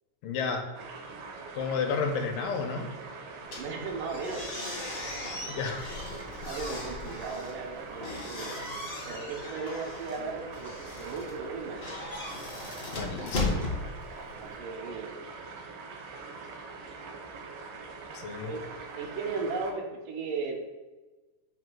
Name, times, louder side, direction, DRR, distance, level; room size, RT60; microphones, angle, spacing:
voice 1, 0.2-0.6 1.5-2.9 5.5-5.9 12.9-13.7 18.1-18.5, left 5 dB, 80° left, 4 dB, 2.2 m, -31 dB
sound 1, 0.7-19.7, right 4 dB, 90° right, 2.7 m, -43 dB
sound 2, 3.4-14.6, left 2 dB, 45° left, 0.8 m, -37 dB
voice 2, 3.5-4.4 6.5-8.6 9.0-11.8 14.4-15.1 18.5-18.6 19.0-20.6, right 4 dB, 75° right, 1 dB, 2.4 m, -36 dB
7.7 x 2.8 x 6.0 m, 1.2 s
omnidirectional pair, 3.9 m